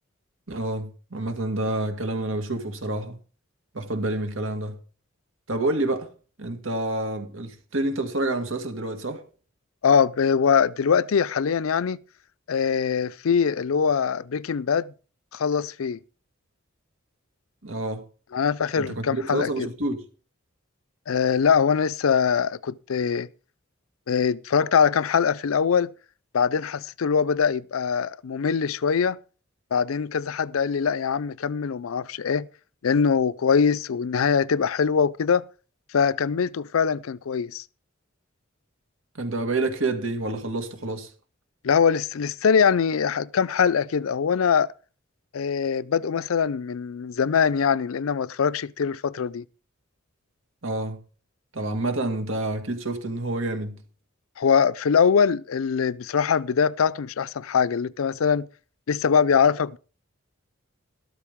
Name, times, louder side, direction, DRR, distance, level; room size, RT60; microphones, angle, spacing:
voice 1, 0.5-3.2 3.7-4.8 5.5-6.1 6.4-9.2 17.6-18.0 18.8-20.1 39.1-41.1 50.6-51.0 51.5-53.8, right 2 dB, 70° right, 2.2 m, -28 dB
voice 2, 9.8-12.0 12.5-14.9 15.3-16.0 18.3-19.7 21.1-23.3 24.1-25.9 26.3-29.2 29.7-32.5 32.8-35.5 35.9-37.6 41.6-44.7 45.3-49.4 54.4-58.5 58.9-59.8, left 6 dB, 85° left, 0.5 m, -22 dB
13.0 x 12.5 x 3.6 m
head